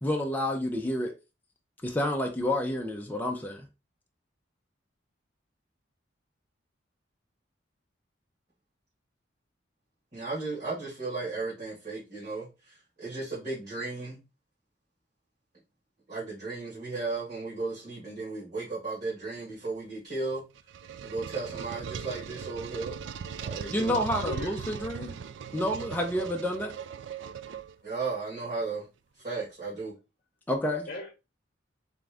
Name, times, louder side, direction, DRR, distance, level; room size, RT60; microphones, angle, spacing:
voice 1, 0.0-1.1 1.8-3.7 23.7-25.1 25.5-26.7 30.5-30.9, left 1 dB, 10° left, 0.5 m, -29 dB
voice 2, 10.1-14.2 16.1-20.4 21.0-23.0 23.4-23.7 27.8-28.9 29.2-29.9, right 3 dB, 40° right, 1.8 m, -35 dB
sound 1, 20.3-28.1, right 7 dB, 70° right, 0.3 m, -39 dB
voice 3, 23.7-24.5 30.9-31.1, left 2 dB, 50° left, 0.9 m, -38 dB
3.7 x 3.4 x 3.5 m
head